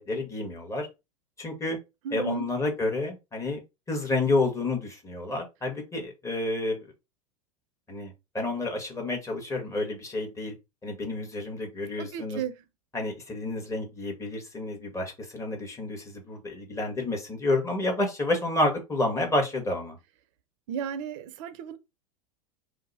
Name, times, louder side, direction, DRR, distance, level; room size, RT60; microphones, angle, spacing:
voice 1, 0.1-0.9 1.4-1.8 2.1-3.6 3.9-6.9 7.9-10.5 10.8-12.4 12.9-20.0, left 2 dB, 15° left, 1.3 m, -29 dB
voice 2, 2.0-2.5 12.0-12.6 20.7-21.8, right 7 dB, 55° right, 0.6 m, -34 dB
2.8 x 2.1 x 4.0 m
hypercardioid pair, 95°, 19 cm